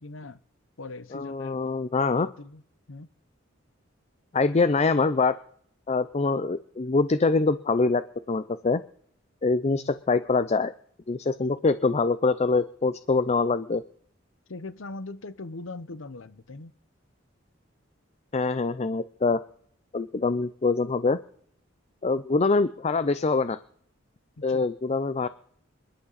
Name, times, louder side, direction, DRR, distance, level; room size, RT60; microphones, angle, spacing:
voice 1, 0.0-0.4 0.8-1.6 2.0-2.6 2.9-3.1 9.7-10.0 14.5-16.7 24.5-24.7, left 3 dB, 80° left, 0.9 m, -40 dB
voice 2, 1.1-2.3 4.3-5.4 5.9-8.8 9.4-10.7 11.1-13.8 18.3-19.4 19.9-21.2 22.0-23.6 24.4-25.3, left 3 dB, 35° left, 0.5 m, -24 dB
26.5 x 11.5 x 4.1 m
head